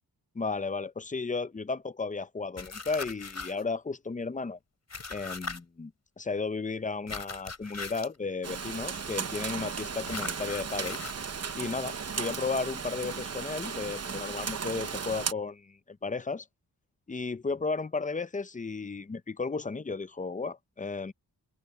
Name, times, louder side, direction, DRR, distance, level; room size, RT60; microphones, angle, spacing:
voice 1, 0.3-4.6 5.1-5.9 6.2-11.0 11.5-16.5 17.1-21.1, left 4 dB, 20° left, 0.5 m, -34 dB
sound 1, 2.6-3.6 4.9-5.6 7.1-8.2 10.1-11.2, left 4 dB, 40° left, 3.7 m, -39 dB
Rain, 8.4-15.3, right 6 dB, 40° right, 0.9 m, -35 dB
wide cardioid pair, 160°, 40 cm